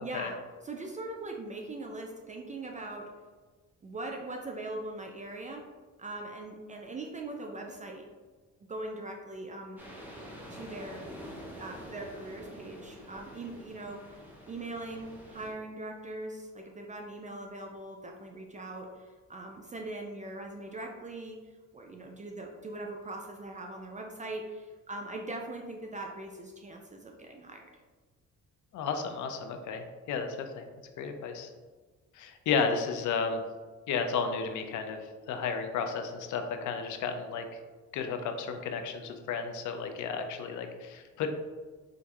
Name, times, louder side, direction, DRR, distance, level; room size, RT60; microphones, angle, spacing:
voice 1, 0.0-0.4 0.6-3.1 3.8-5.6 6.0-8.1 8.7-9.8 10.5-11.0 11.6-14.0 14.5-21.4 21.7-27.7, right 2 dB, 25° right, 2 dB, 0.4 m, -41 dB
sound 1, 9.8-15.5, equal, 5° right, 0.8 m, -47 dB
voice 2, 28.7-30.3 30.6-30.7 31.0-31.5 32.2-33.4 33.9-37.4 37.9-41.3, left 5 dB, 75° left, 6 dB, 0.5 m, -33 dB
4.6 x 2.6 x 2.3 m, 1.4 s
cardioid pair, 90°, 30 cm